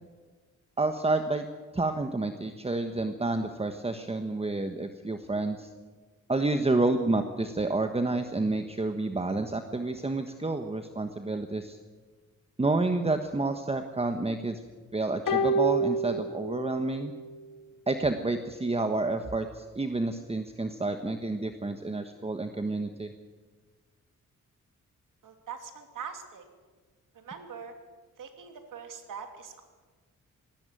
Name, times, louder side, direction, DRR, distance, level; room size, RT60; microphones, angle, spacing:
voice 1, 0.8-1.4 1.7-5.7 6.3-11.8 12.6-14.6 14.9-17.1 17.9-23.1, right 2 dB, 20° right, 7 dB, 1.3 m, -29 dB
sound 1, 15.3-16.9 17.2-17.3, right 2 dB, 80° left, 2.0 m, -27 dB
voice 2, 25.2-26.5 27.1-27.7 28.2-29.6, right 6 dB, 75° right, 5 dB, 3.1 m, -42 dB
19.0 x 16.5 x 9.1 m, 1.4 s
cardioid pair, 90°, 32 cm